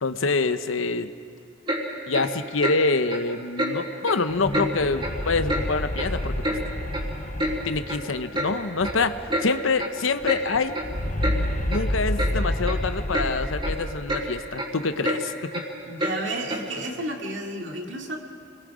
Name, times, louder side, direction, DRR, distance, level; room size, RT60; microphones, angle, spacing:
voice 1, 0.0-1.1 2.1-6.3 7.6-10.8 11.7-15.3, left 3 dB, 85° left, 10 dB, 0.9 m, -26 dB
Clock, 1.7-1.8 2.1-2.3 2.6-2.8 3.1-3.2 3.6-3.7 4.0-4.2 4.5-4.7 5.0-5.2 5.5-5.6 6.0-6.6 6.9-7.0 7.4-7.5 7.9-8.0 8.3-8.5 8.8-9.0 9.3-9.5 9.8-9.9 10.2-10.4 10.7-10.9 11.2-11.4 11.7-11.8 12.2-12.3 12.6-12.8 13.1-13.3 13.6-13.8 14.1-14.2 14.5-14.7 15.0-15.2 15.5-15.6 16.0-16.1 16.5-16.6, right 1 dB, 25° right, 3.6 m, -27 dB
sound 1, 4.3-9.5 9.7-9.8 10.1-14.5, left 1 dB, 40° left, 1.0 m, -30 dB
voice 2, 15.8-18.2, right 1 dB, 65° right, 1 dB, 2.5 m, -32 dB
29.0 x 21.0 x 5.0 m, 2.5 s
head